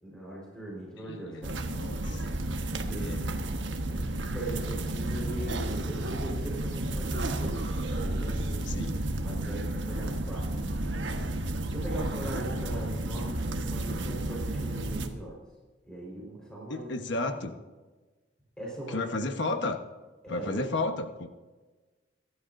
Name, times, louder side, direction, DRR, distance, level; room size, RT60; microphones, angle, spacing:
voice 1, 0.0-1.6 2.9-3.2 4.3-8.9 9.2-10.5 11.7-15.4 15.9-17.3 18.6-19.1 20.2-20.7, right 1 dB, 5° left, -4 dB, 4.5 m, -40 dB
voice 2, 1.0-2.2 3.0-3.3 8.6-9.0 16.7-17.5 18.9-19.8 20.3-21.3, left 2 dB, 65° left, 6 dB, 1.2 m, -33 dB
sound 1, 1.4-15.1, right 1 dB, 70° right, 1.4 m, -32 dB
24.5 x 12.5 x 2.7 m, 1.3 s
head